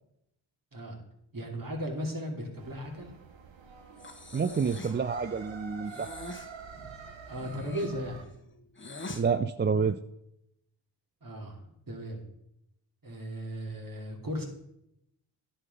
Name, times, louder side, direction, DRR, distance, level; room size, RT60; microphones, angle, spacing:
voice 1, 1.3-3.1 6.7-7.0 7.3-8.2 11.2-11.6 11.9-12.2 13.0-14.4, equal, 45° right, 1 dB, 2.7 m, -36 dB
sound 1, 2.6-8.2, right 6 dB, 65° right, 1.2 m, -47 dB
Breathing, 4.0-5.0 5.8-6.5 7.3-9.2, left 2 dB, 25° left, 1.2 m, -43 dB
voice 2, 4.3-6.1 9.1-10.0, right 5 dB, 25° right, 11 dB, 0.4 m, -28 dB
9.9 x 5.8 x 5.4 m, 0.80 s
cardioid pair, 45°, 48 cm